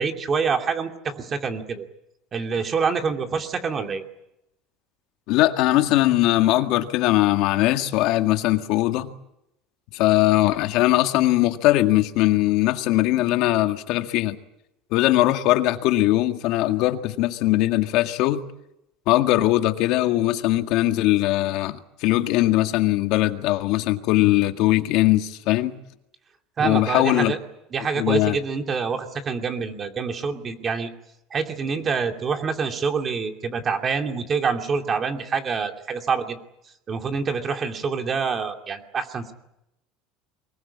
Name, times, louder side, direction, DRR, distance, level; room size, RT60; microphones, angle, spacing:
voice 1, 0.0-1.8 2.3-4.0 26.6-27.4 27.7-30.9 31.3-36.4 36.9-39.3, right 5 dB, 30° right, 2.6 m, -26 dB
voice 2, 5.3-9.1 9.9-14.4 14.9-18.4 19.1-25.8 26.6-27.3 28.0-28.4, left 16 dB, 65° left, 1.9 m, -20 dB
24.0 x 21.0 x 8.6 m
cardioid pair, 140°, 0 cm